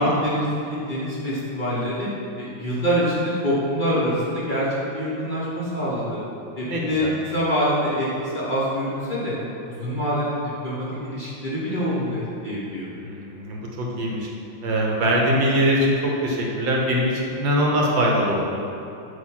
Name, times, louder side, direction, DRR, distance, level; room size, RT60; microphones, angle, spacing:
voice 1, 0.0-2.1 2.4-6.2 6.6-9.4 9.6-12.9, equal, 25° left, -10 dB, 1.4 m, -25 dB
voice 2, 6.6-7.1 13.0-14.3 14.6-18.6, equal, 70° right, -2 dB, 1.7 m, -22 dB
7.9 x 3.0 x 6.2 m, 2.8 s
omnidirectional pair, 2.2 m